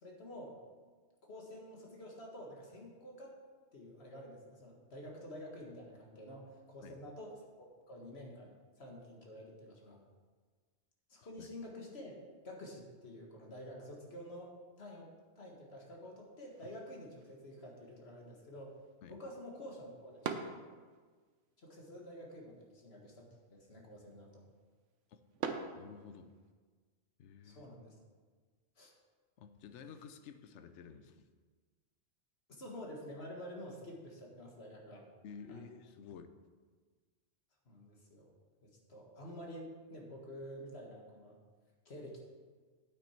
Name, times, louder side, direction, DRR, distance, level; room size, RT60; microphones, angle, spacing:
voice 1, 0.0-0.6 1.2-3.3 3.7-7.3 7.6-10.0 11.1-12.2 12.4-15.1 15.4-18.8 19.1-20.5 21.6-24.4 27.4-28.0 28.8-28.9 32.6-35.0 35.5-35.6 37.7-38.3 38.6-41.4 41.9-42.3, equal, 60° left, -1 dB, 2.0 m, -49 dB
sound 1, 16.5-26.5, right 5 dB, 90° right, 1.1 m, -48 dB
voice 2, 25.7-26.3 27.2-27.7 29.4-31.2 35.2-36.3, left 6 dB, 80° left, 9 dB, 1.0 m, -52 dB
8.9 x 8.8 x 4.5 m, 1.5 s
omnidirectional pair, 1.2 m